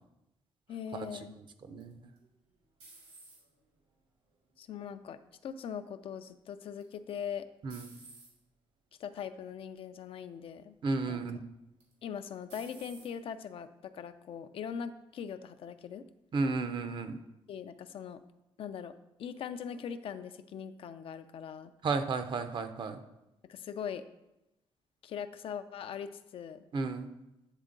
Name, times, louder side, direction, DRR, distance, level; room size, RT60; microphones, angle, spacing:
voice 1, 0.7-1.4 4.6-7.5 9.0-10.8 11.1-11.2 12.0-16.1 17.5-18.2 18.6-18.9 19.2-21.7 23.4-24.0 25.0-26.6, left 7 dB, 60° left, 10 dB, 0.4 m, -41 dB
sound 1, 1.8-3.7 4.3-4.8 6.8-7.2 7.7-8.3 9.1-9.3 9.8-9.9 11.8-12.2 12.5-13.1, right 3 dB, 85° right, 2.2 m, -54 dB
voice 2, 10.8-11.4 16.3-17.2 21.8-23.0 26.7-27.1, right 4 dB, 50° right, 9 dB, 0.6 m, -33 dB
9.1 x 3.6 x 3.8 m, 0.92 s
cardioid pair, 110°, 10 cm